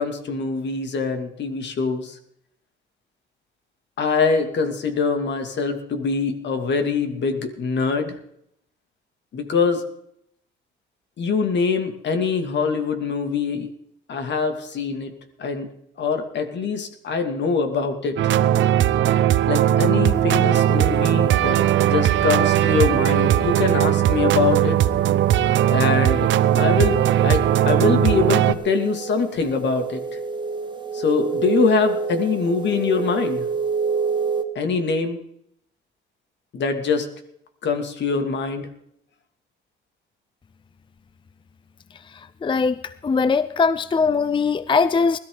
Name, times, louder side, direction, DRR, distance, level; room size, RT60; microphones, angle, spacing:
voice 1, 0.0-2.2 4.0-8.2 9.3-9.8 11.2-13.7 14.1-15.1 15.4-15.7 16.0-18.3 19.5-24.8 25.7-26.3 26.6-30.0 30.9-33.5 34.5-35.2 36.5-37.1 37.6-38.7, left 5 dB, 65° left, 6 dB, 2.5 m, -23 dB
sound 1, 18.2-28.5, right 11 dB, 70° right, 0.7 m, -18 dB
sound 2, 20.6-34.4, right 5 dB, 25° right, 1.6 m, -29 dB
voice 2, 42.4-42.7 43.0-45.2, left 5 dB, 25° left, 16 dB, 0.5 m, -20 dB
20.5 x 13.0 x 3.9 m, 0.73 s
cardioid pair, 90°, 20 cm